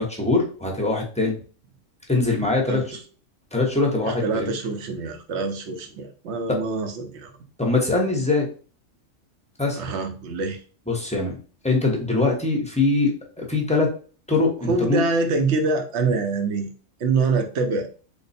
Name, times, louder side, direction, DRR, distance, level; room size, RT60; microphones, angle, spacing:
voice 1, 0.0-1.4 2.1-2.8 3.5-4.5 7.6-8.5 9.6-9.8 10.9-11.4 11.6-13.1 13.4-13.9 14.3-15.0, left 3 dB, 5° left, -1 dB, 0.7 m, -22 dB
voice 2, 4.1-7.3 9.8-10.6 14.7-16.7 17.0-17.9, right 3 dB, 60° right, 6 dB, 0.9 m, -25 dB
3.4 x 2.2 x 4.1 m, 0.38 s
omnidirectional pair, 1.4 m